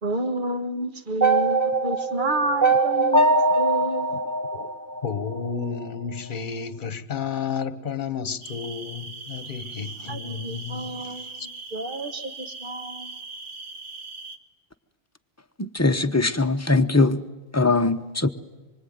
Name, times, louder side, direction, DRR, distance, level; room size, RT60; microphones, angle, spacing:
voice 1, 0.0-4.1 10.1-13.2, right 1 dB, 50° right, 1.6 m, -30 dB
sound 1, 1.2-5.4, right 3 dB, 15° right, 1.6 m, -22 dB
voice 2, 5.0-11.5, left 6 dB, 50° left, 1.2 m, -32 dB
sound 2, 8.4-14.4, right 3 dB, 75° right, 1.8 m, -40 dB
voice 3, 15.6-17.2 17.5-18.3, left 3 dB, 15° left, 0.9 m, -21 dB
25.5 x 24.0 x 9.4 m
omnidirectional pair, 1.1 m